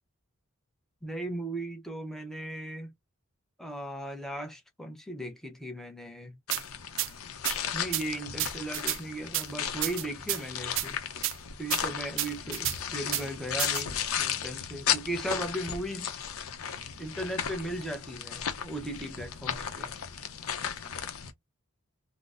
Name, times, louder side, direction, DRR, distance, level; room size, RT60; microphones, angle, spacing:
voice 1, 1.0-2.9 3.6-6.4 7.7-11.0 11.6-16.1 17.0-19.9, right 1 dB, ahead, 0.6 m, -37 dB
sound 1, 6.5-21.3, left 8 dB, 85° left, 0.6 m, -35 dB
sound 2, 6.5-6.6 7.0-7.1 7.4-7.6 7.9-8.0 8.4-9.0 9.3-9.4 9.8-10.4 10.8-10.9 11.2-11.3 11.7-11.8 12.2-12.8 13.1-13.2 13.6-13.8, right 15 dB, 60° right, 0.3 m, -30 dB
3.8 x 2.0 x 2.4 m
head